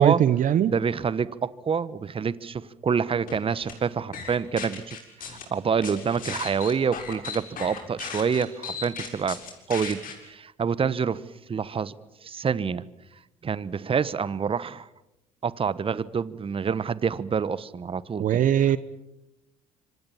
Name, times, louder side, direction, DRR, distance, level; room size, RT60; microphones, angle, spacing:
voice 1, 0.0-0.7 18.2-18.8, right 10 dB, 50° right, 16 dB, 1.0 m, -20 dB
voice 2, 0.7-9.4 9.7-11.2 11.5-11.9 12.2-12.8 13.4-14.9 15.4-18.2, right 6 dB, 30° right, 18 dB, 1.2 m, -27 dB
sound 1, 3.3-3.7 4.1-5.4 5.8-10.1, left 6 dB, 55° left, 7.0 m, -36 dB
27.0 x 25.5 x 7.3 m, 0.91 s
hypercardioid pair, 60°, 17 cm